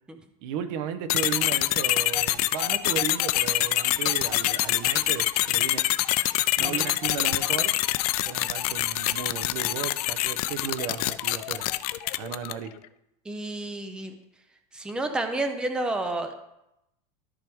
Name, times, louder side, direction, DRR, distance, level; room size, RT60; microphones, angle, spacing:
voice 1, 0.4-5.9 6.6-7.7 8.2-11.7 12.2-12.7, right 8 dB, 50° right, 10 dB, 0.7 m, -34 dB
sound 1, 1.1-12.7, left 16 dB, 75° left, 0.5 m, -25 dB
voice 2, 13.3-14.1 14.7-16.3, right 2 dB, 5° right, 7 dB, 0.5 m, -30 dB
13.5 x 4.7 x 3.5 m, 0.86 s
supercardioid pair, 170°, 20 cm